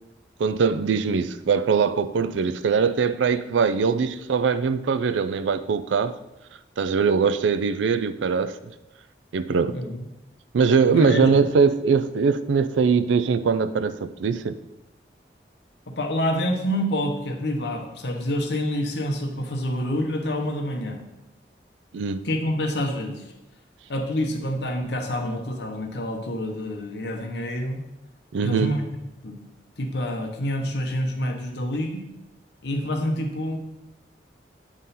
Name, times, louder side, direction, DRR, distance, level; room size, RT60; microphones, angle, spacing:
voice 1, 0.4-6.2 6.8-8.6 9.3-9.8 10.5-14.6 21.9-22.3 28.3-28.7, right 5 dB, 90° right, 13 dB, 0.4 m, -22 dB
voice 2, 9.7-10.1 10.9-11.4 16.0-21.0 22.2-23.3 23.9-27.8 28.4-28.8 29.2-29.4 29.8-32.1 32.6-33.6, equal, 70° left, 3 dB, 1.0 m, -27 dB
8.9 x 3.8 x 4.1 m, 0.94 s
head